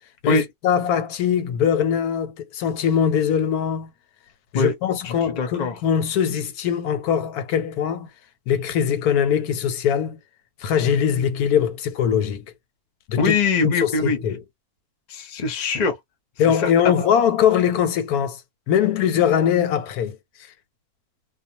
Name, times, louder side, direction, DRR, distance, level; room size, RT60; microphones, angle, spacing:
voice 1, 0.2-3.9 4.5-8.1 8.5-10.2 10.6-12.4 13.1-13.4 13.8-14.4 16.4-18.4 18.7-20.2, left 8 dB, 90° left, 1.2 m, -21 dB
voice 2, 5.0-5.8 13.2-14.2 15.1-16.0 16.5-17.1, left 4 dB, 45° left, 0.5 m, -23 dB
2.4 x 2.2 x 2.7 m
omnidirectional pair, 1.6 m